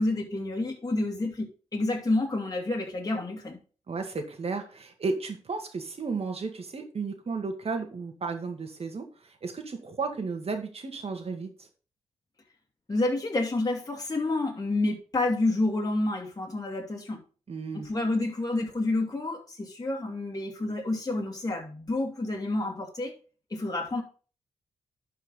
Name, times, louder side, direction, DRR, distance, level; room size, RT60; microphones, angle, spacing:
voice 1, 0.0-3.6 12.9-17.2 17.7-23.1 23.5-24.0, left 2 dB, 30° left, 2.4 m, -29 dB
voice 2, 3.9-11.7 17.5-17.9, right 4 dB, 55° right, 2.0 m, -34 dB
11.5 x 4.9 x 3.8 m
supercardioid pair, 45°, 12 cm